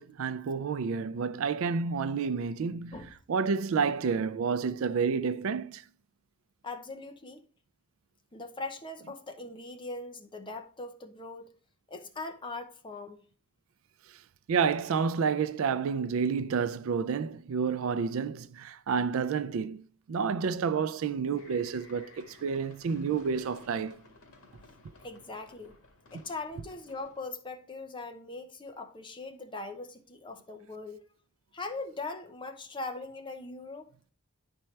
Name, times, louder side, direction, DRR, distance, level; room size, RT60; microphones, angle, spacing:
voice 1, 0.0-3.0 3.3-5.8 14.5-19.8 20.1-24.0, right 5 dB, 65° right, 0.4 m, -29 dB
voice 2, 6.6-7.4 8.3-11.5 11.9-13.2 25.0-25.8 26.1-31.0 31.5-33.9, left 3 dB, 20° left, 0.7 m, -40 dB
sound 1, 21.3-27.4, left 2 dB, 80° left, 1.6 m, -56 dB
10.5 x 4.4 x 3.2 m
head